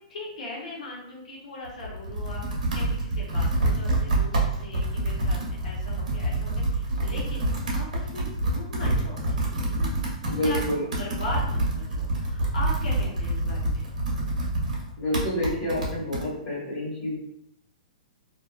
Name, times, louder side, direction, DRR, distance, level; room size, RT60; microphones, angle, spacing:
voice 1, 0.1-2.4 2.7-10.6 10.9-13.9, left 2 dB, 75° left, -4 dB, 0.7 m, -39 dB
Computer keyboard, 1.6-16.3, right 1 dB, 85° right, 0.8 m, -27 dB
voice 2, 10.2-10.9 15.0-17.2, equal, 15° left, -11 dB, 1.4 m, -28 dB
2.5 x 2.1 x 2.3 m, 0.76 s
hypercardioid pair, 175°, 4 cm